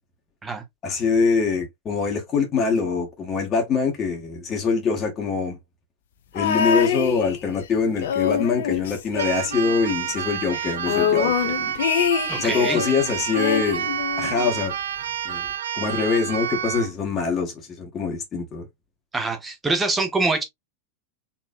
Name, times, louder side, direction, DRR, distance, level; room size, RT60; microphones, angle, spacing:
voice 1, 0.8-5.6 6.3-11.7 12.4-14.7 15.2-15.5 15.7-18.7, left 5 dB, 25° left, 1.5 m, -24 dB
sound 1, 6.4-7.6 8.0-9.9 10.1-10.2 10.5-12.9 13.3-14.6 15.5-15.6, left 8 dB, 60° left, 0.7 m, -25 dB
Keyboard (musical), 9.2-16.9, right 9 dB, 60° right, 0.6 m, -29 dB
voice 2, 12.3-12.8 19.1-20.4, right 3 dB, 15° right, 1.3 m, -24 dB
4.2 x 3.7 x 2.5 m
figure-of-eight pair, 90°, 0 cm